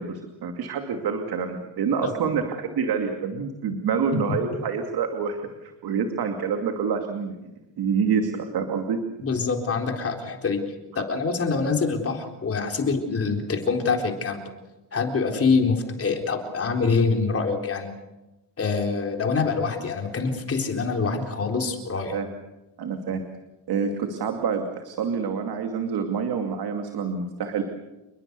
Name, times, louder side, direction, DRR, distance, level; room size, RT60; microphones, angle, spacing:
voice 1, 0.0-7.4 7.8-9.0 22.1-22.3 22.8-23.2 23.7-27.6, right 6 dB, 55° right, 5 dB, 2.5 m, -27 dB
voice 2, 9.2-10.6 11.0-14.4 14.9-17.9 18.6-22.2, left 4 dB, 30° left, 3 dB, 4.1 m, -25 dB
28.5 x 21.5 x 6.9 m, 1.0 s
cardioid pair, 145°, 45 cm